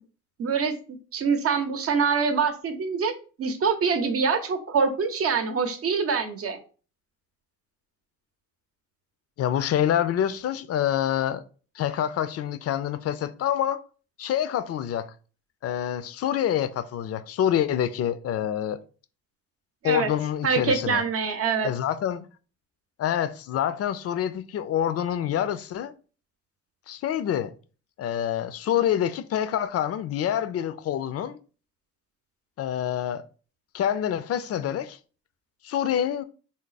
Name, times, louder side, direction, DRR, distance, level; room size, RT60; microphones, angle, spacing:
voice 1, 0.4-3.1 3.4-6.6 19.8-20.1 20.4-21.7, right 5 dB, 50° right, 0.7 m, -25 dB
voice 2, 9.4-11.4 11.8-13.8 14.2-15.1 15.6-18.8 19.8-21.0 21.6-22.3 23.0-25.9 26.9-27.5 28.0-31.4 32.6-33.2 33.7-35.0 35.6-36.2, left 10 dB, 50° left, 0.4 m, -26 dB
3.5 x 2.0 x 3.9 m
cardioid pair, 90°, 30 cm